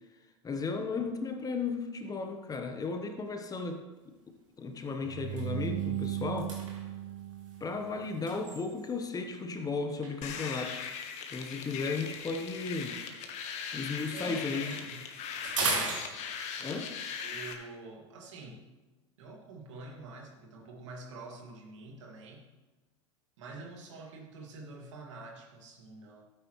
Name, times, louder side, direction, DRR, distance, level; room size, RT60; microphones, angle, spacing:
voice 1, 0.4-3.8 4.6-6.6 7.6-10.8 11.3-13.0 13.7-14.7 16.6-16.9, left 4 dB, 25° left, 5 dB, 1.1 m, -35 dB
sound 1, 4.1-4.3 4.7-4.9 5.2-9.2 10.0-13.6 13.9-16.7, right 3 dB, 90° right, 2.6 m, -39 dB
sound 2, 5.0-8.2, right 12 dB, 50° right, 0.7 m, -37 dB
sound 3, 10.2-17.5, left 7 dB, 45° left, 1.4 m, -40 dB
voice 2, 14.1-15.0 17.2-18.6 19.2-22.5 23.4-26.2, right 3 dB, 75° right, 0 dB, 2.3 m, -46 dB
12.5 x 9.2 x 3.2 m, 1.2 s
hypercardioid pair, 90°, 16 cm